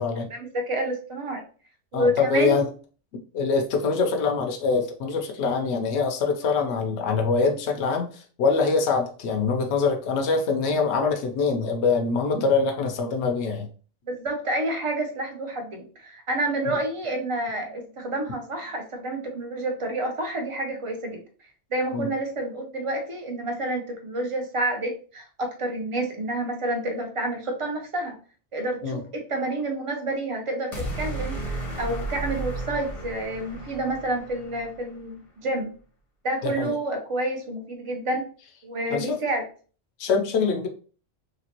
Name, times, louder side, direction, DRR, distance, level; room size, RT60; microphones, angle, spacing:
voice 1, 0.3-1.4 1.9-2.6 14.1-21.2 21.7-28.2 28.5-35.7 36.2-38.2 38.6-39.4, right 1 dB, 30° right, 3 dB, 0.7 m, -29 dB
voice 2, 1.9-2.7 3.3-13.7 16.7-16.8 21.9-22.1 28.8-29.0 36.4-36.7 38.9-39.2 40.0-40.7, left 4 dB, 75° left, 3 dB, 0.9 m, -24 dB
sound 1, 30.7-35.0, right 2 dB, 35° left, 0.8 m, -33 dB
3.1 x 2.9 x 2.9 m, 0.39 s
omnidirectional pair, 1.2 m